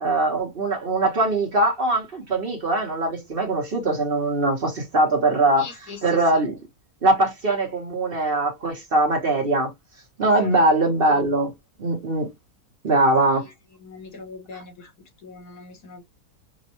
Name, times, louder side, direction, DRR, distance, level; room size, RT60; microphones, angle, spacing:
voice 1, 0.0-5.7 6.0-6.6 7.0-9.7 10.2-11.5 11.8-12.3 12.8-13.5 14.5-14.6, right 2 dB, 40° right, 1.1 m, -21 dB
voice 2, 5.6-6.3 10.2-10.6 13.8-14.9 15.2-16.0, left 4 dB, 80° left, 1.8 m, -40 dB
5.1 x 2.2 x 2.8 m
omnidirectional pair, 1.7 m